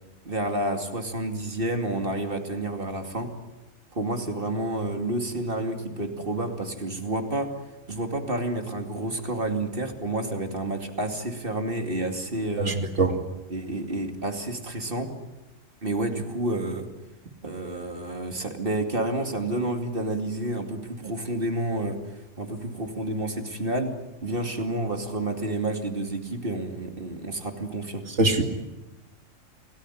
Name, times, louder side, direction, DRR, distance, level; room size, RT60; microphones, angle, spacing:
voice 1, 0.2-3.4 3.9-7.6 7.9-12.8 13.5-15.1 15.8-16.9 17.4-22.0 22.4-24.0 24.2-28.1, right 2 dB, 45° right, 5 dB, 2.8 m, -29 dB
voice 2, 12.7-13.2 28.2-28.4, right 2 dB, 65° right, 5 dB, 2.9 m, -22 dB
28.5 x 18.5 x 10.0 m, 1.0 s
omnidirectional pair, 1.3 m